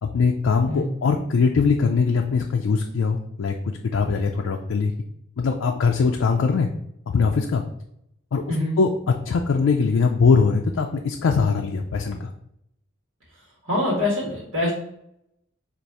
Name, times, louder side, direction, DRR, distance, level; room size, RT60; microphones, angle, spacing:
voice 1, 0.0-4.9 5.4-6.7 7.1-7.6 8.3-12.3, left 5 dB, 75° left, 3 dB, 0.4 m, -21 dB
voice 2, 8.5-8.8 13.6-14.7, left 1 dB, 75° right, -4 dB, 1.4 m, -24 dB
4.0 x 2.5 x 4.7 m, 0.76 s
head